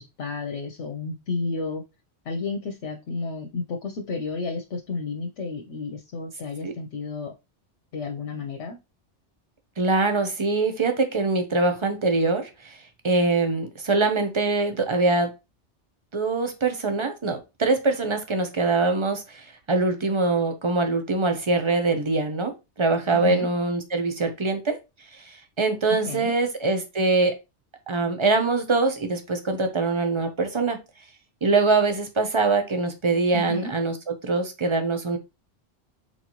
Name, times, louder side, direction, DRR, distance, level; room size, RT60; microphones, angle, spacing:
voice 1, 0.0-1.8 2.3-7.3 7.9-8.8 23.1-23.5 26.1-26.3 33.3-33.7, left 4 dB, 75° left, 3 dB, 1.0 m, -31 dB
voice 2, 9.8-12.8 13.0-15.3 16.1-22.5 22.8-24.8 25.2-27.4 27.9-30.8 31.4-35.2, right 3 dB, 30° right, 7 dB, 0.8 m, -23 dB
4.3 x 4.1 x 3.0 m, 0.25 s
omnidirectional pair, 1.2 m